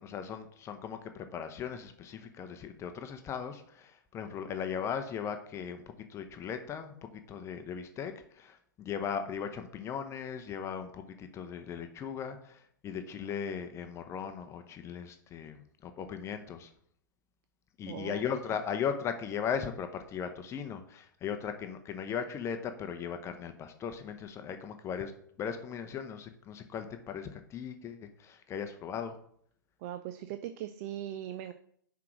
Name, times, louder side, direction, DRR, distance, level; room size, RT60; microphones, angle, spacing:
voice 1, 0.0-5.8 6.1-16.7 17.8-25.1 25.4-29.2, left 7 dB, 25° left, 7 dB, 0.7 m, -38 dB
voice 2, 17.9-18.2 29.8-31.5, right 12 dB, 45° right, 11 dB, 0.5 m, -39 dB
6.0 x 4.7 x 6.1 m, 0.65 s
hypercardioid pair, 110°, 11 cm